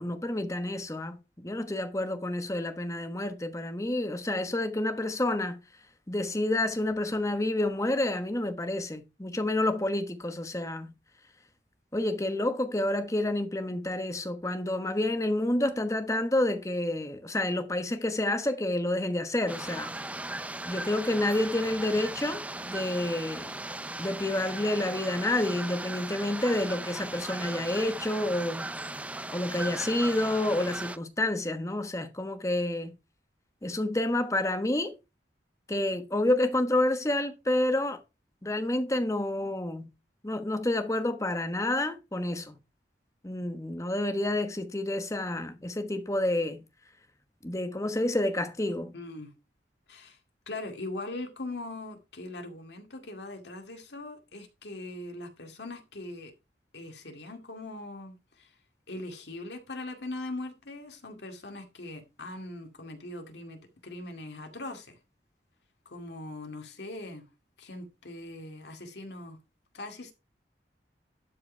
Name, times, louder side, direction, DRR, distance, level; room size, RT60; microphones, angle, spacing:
voice 1, 0.0-5.6 6.1-10.9 11.9-19.9 20.6-23.5 24.0-28.7 29.3-32.9 33.6-34.9 35.7-38.0 38.4-39.9 40.2-42.6 43.2-46.6 47.4-48.9, left 1 dB, 15° left, 1.0 m, -29 dB
sound 1, 19.5-31.0, right 2 dB, 10° right, 0.5 m, -38 dB
voice 2, 48.9-49.3 49.9-50.2 50.5-56.3 56.7-58.5 58.9-65.0 65.9-67.3 67.6-69.4 69.7-70.1, left 2 dB, 75° left, 2.2 m, -41 dB
12.0 x 4.8 x 4.5 m
head